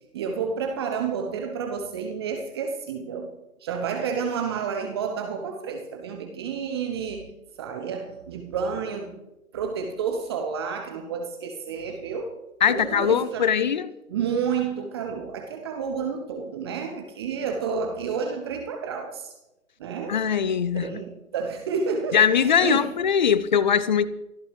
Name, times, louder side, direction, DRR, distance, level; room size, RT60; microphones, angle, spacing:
voice 1, 0.1-3.3 3.6-7.3 7.6-9.2 9.5-12.3 12.7-13.5 14.1-19.3 19.8-20.2 20.7-22.9, right 6 dB, 20° right, 0.9 m, -30 dB
voice 2, 12.6-13.9 20.1-21.0 22.1-24.1, left 7 dB, 35° left, 0.7 m, -21 dB
23.5 x 13.5 x 3.3 m
figure-of-eight pair, 135°, 42 cm